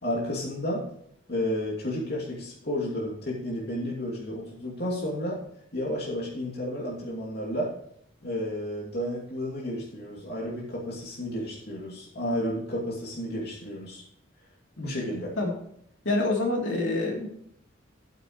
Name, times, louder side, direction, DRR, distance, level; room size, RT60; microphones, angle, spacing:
voice 1, 0.0-0.8 1.3-5.4 5.7-7.8 8.2-14.0 14.8-15.3, left 1 dB, 55° left, -4 dB, 2.8 m, -32 dB
voice 2, 16.0-17.3, left 2 dB, 70° left, -1 dB, 3.1 m, -26 dB
14.0 x 8.8 x 3.2 m, 0.70 s
head